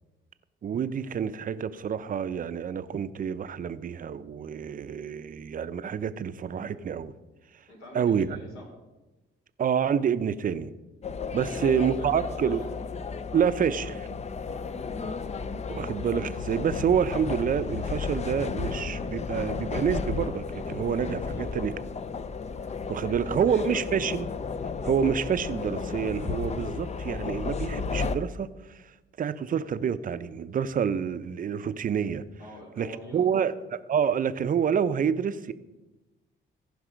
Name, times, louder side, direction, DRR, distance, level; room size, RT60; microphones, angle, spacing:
voice 1, 0.6-7.1 7.5-7.6 7.9-8.3 9.6-10.7 11.3-12.6 13.3-14.1 15.7-21.7 22.9-24.3 24.8-32.2 32.8-33.5 33.9-35.5, right 7 dB, 45° right, 13 dB, 0.6 m, -28 dB
voice 2, 7.7-8.7 11.4-12.6 14.4-15.3 21.3-21.5 22.6-23.8 32.4-33.5, left 1 dB, 70° left, -1 dB, 4.2 m, -45 dB
sound 1, 11.0-28.2, left 5 dB, 35° left, 0.6 m, -33 dB
15.0 x 5.4 x 5.1 m, 1.1 s
cardioid pair, 90°, 20 cm